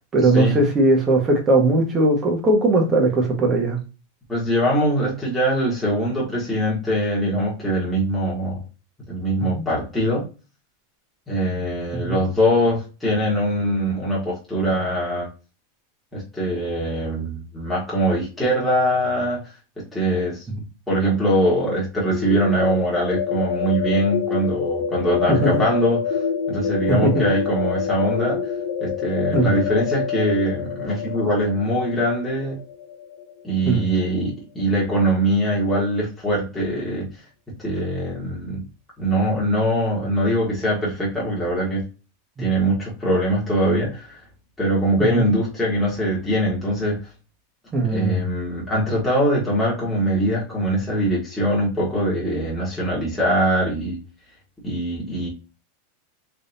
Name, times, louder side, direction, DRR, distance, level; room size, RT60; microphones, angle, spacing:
voice 1, 0.1-3.8 9.5-9.6 11.9-12.2 20.5-20.6 25.3-25.6 26.9-27.3 29.3-29.6 33.6-33.9 45.1-45.2 47.7-48.2, right 2 dB, 20° right, 1 dB, 1.1 m, -19 dB
voice 2, 4.3-8.6 9.1-10.2 11.3-15.3 16.1-19.4 19.9-20.4 20.9-26.2 26.5-28.4 28.8-32.6 33.4-37.1 37.6-38.6 39.0-41.9 42.4-44.2 44.6-47.0 47.9-54.0 54.6-55.3, equal, 5° left, -7 dB, 1.4 m, -22 dB
sound 1, 22.1-33.8, left 7 dB, 70° left, 0.7 m, -27 dB
3.5 x 3.4 x 2.7 m, 0.32 s
supercardioid pair, 160°, 0 cm